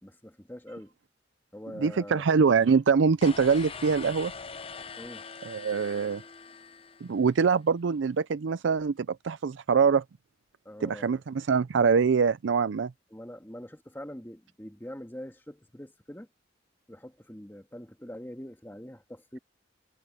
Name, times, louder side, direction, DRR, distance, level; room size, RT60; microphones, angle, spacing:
voice 1, 0.0-0.9 1.5-2.3 5.0-5.2 10.7-11.2 13.1-16.3 16.9-19.4, equal, 10° left, 1.9 m, -43 dB
voice 2, 1.8-4.3 5.5-6.2 7.0-10.0 10.8-12.9, right 5 dB, 75° right, 0.5 m, -24 dB
sound 1, 3.2-7.4, left 5 dB, 30° left, 0.7 m, -43 dB
head